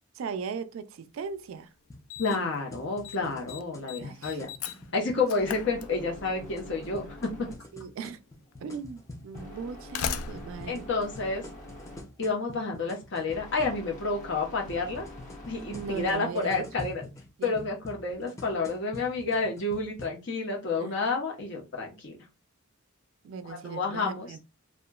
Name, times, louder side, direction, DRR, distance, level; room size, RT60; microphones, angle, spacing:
voice 1, 0.1-1.7 4.0-4.4 4.8-4.9 7.7-8.2 8.6-10.9 15.7-16.6 17.4-17.7 20.8-20.9 23.2-24.4, right 5 dB, 70° right, 0.3 m, -38 dB
Slam, 1.3-1.4 2.1-2.6 2.8-3.2 3.5-6.4 7.5-7.6 8.5-8.6 9.5-11.9, left 7 dB, 85° left, 0.3 m, -38 dB
sound 1, 1.9-5.2 6.2-9.5 10.4-13.8 14.7-20.1, left 1 dB, 15° left, 0.4 m, -46 dB
voice 2, 2.2-4.5 4.9-7.5 10.7-11.4 12.2-15.1 15.5-17.1 17.4-22.2 23.4-24.3, left 3 dB, 60° left, 0.9 m, -30 dB
sound 2, 4.2-16.7, left 1 dB, 35° left, 1.1 m, -48 dB
2.8 x 2.3 x 2.3 m
head